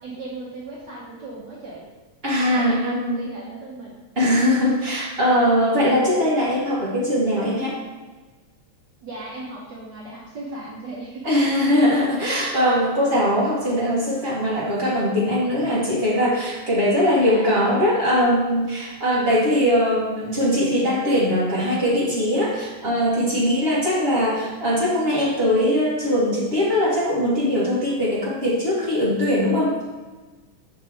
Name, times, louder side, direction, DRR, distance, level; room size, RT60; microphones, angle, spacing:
voice 1, 0.0-1.8 2.4-4.3 9.0-11.3 17.2-17.5 23.6-23.8, right 2 dB, 85° right, -5 dB, 0.9 m, -37 dB
voice 2, 2.2-3.2 4.1-7.8 11.2-29.8, equal, 40° right, -7 dB, 0.8 m, -21 dB
6.0 x 5.7 x 3.5 m, 1.3 s
omnidirectional pair, 3.5 m